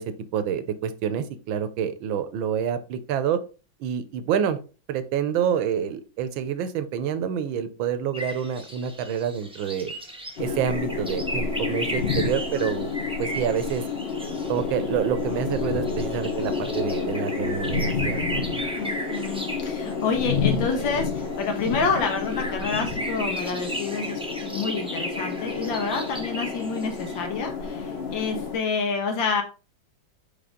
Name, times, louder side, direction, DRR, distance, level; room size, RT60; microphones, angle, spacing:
voice 1, 0.0-3.4 3.8-4.6 4.9-9.9 10.4-12.9 13.2-13.8 14.5-18.5, right 8 dB, 80° right, 11 dB, 1.5 m, -27 dB
sound 1, 8.1-27.3, right 1 dB, 5° right, 0.5 m, -36 dB
sound 2, 10.4-28.6, left 5 dB, 35° left, 1.2 m, -30 dB
voice 2, 18.7-29.4, left 4 dB, 75° left, 4 dB, 1.9 m, -28 dB
5.1 x 4.8 x 3.8 m, 0.34 s
omnidirectional pair, 2.2 m